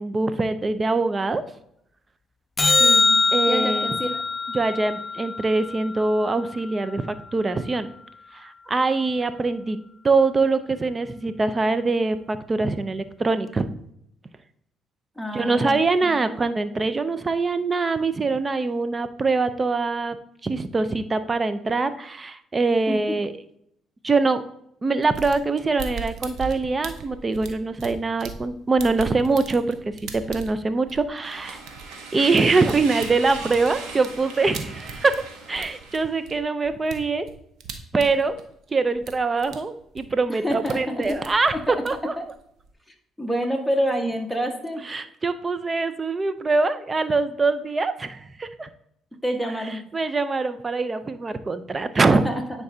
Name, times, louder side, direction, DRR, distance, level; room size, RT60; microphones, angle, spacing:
voice 1, 0.0-1.4 3.3-4.0 4.5-7.9 8.3-9.8 10.0-13.8 15.3-20.2 20.4-23.3 24.0-24.4 24.8-29.8 30.1-31.6 32.1-35.2 35.5-37.3 37.9-38.4 38.7-41.5 41.8-42.1 44.9-48.7 49.9-52.2, right 3 dB, 30° right, 12 dB, 0.6 m, -23 dB
sound 1, 2.6-7.0 13.6-13.7, left 4 dB, 30° left, 0.3 m, -23 dB
voice 2, 2.7-3.2 3.5-4.2 15.2-16.2 22.9-23.0 40.3-41.2 41.7-41.8 42.2-42.3 43.2-44.8 49.2-49.8 52.1-52.3, equal, ahead, 3 dB, 1.5 m, -27 dB
sound 2, 25.0-28.5 28.8-35.3 35.5-38.7 38.9-39.6 39.8-40.8 41.0-42.7, right 5 dB, 70° right, 0.8 m, -39 dB
sound 3, 31.2-36.2, right 4 dB, 85° right, 1.2 m, -38 dB
9.5 x 4.6 x 2.8 m, 0.74 s
supercardioid pair, 70°, 0 cm